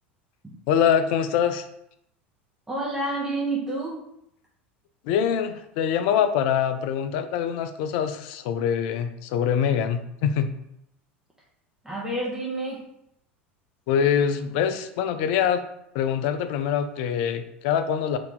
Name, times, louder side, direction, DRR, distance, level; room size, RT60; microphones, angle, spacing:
voice 1, 0.7-1.7 5.0-10.5 13.9-15.6 15.9-18.2, left 8 dB, 60° left, 9 dB, 0.4 m, -24 dB
voice 2, 2.7-4.0 11.8-12.8, right 2 dB, 10° right, -5 dB, 0.9 m, -29 dB
3.8 x 2.8 x 3.6 m, 0.77 s
hypercardioid pair, 80°, 6 cm